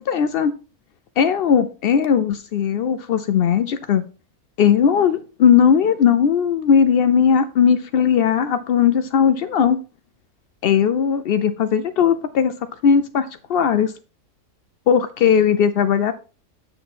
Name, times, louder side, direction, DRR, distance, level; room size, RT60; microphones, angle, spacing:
voice 1, 0.1-0.5 1.2-4.0 4.6-9.8 10.6-12.5 12.8-13.9 14.9-16.1, left 7 dB, 80° left, 11 dB, 0.5 m, -18 dB
7.8 x 6.6 x 4.2 m, 0.35 s
omnidirectional pair, 1.6 m